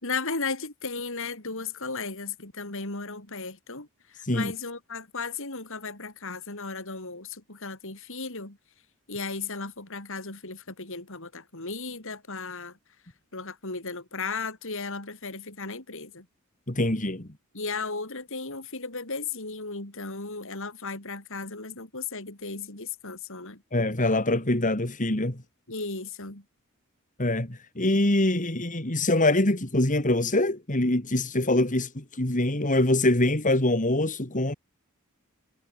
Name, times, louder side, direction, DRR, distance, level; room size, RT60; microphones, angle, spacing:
voice 1, 0.0-3.9 4.2-8.6 9.1-12.8 13.3-16.3 17.5-23.6 25.7-26.4, left 4 dB, 60° left, 4.8 m, -35 dB
voice 2, 16.7-17.3 23.7-25.4 27.2-34.5, left 1 dB, 35° left, 2.8 m, -24 dB
head